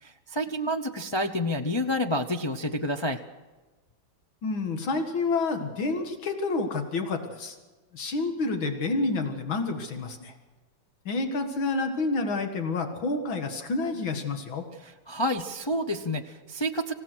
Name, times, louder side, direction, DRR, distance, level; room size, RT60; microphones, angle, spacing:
voice 1, 0.0-3.2 14.8-16.9, equal, 35° left, 3 dB, 0.4 m, -29 dB
voice 2, 4.4-7.6 7.9-10.3 11.1-14.6, left 3 dB, 90° left, 5 dB, 2.6 m, -29 dB
26.0 x 16.0 x 6.2 m, 1.2 s
omnidirectional pair, 2.1 m